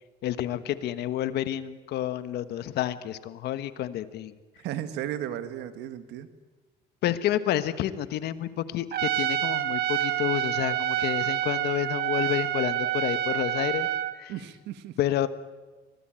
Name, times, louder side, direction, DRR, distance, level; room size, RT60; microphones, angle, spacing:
voice 1, 0.2-4.3 7.0-13.9 14.2-14.3 15.0-15.3, left 12 dB, 75° left, 12 dB, 1.3 m, -29 dB
voice 2, 4.6-6.3 14.3-14.9, right 11 dB, 85° right, 10 dB, 1.7 m, -34 dB
Trumpet, 8.9-14.2, right 12 dB, 70° right, 1.6 m, -28 dB
24.0 x 19.0 x 9.0 m, 1.3 s
cardioid pair, 110°, 17 cm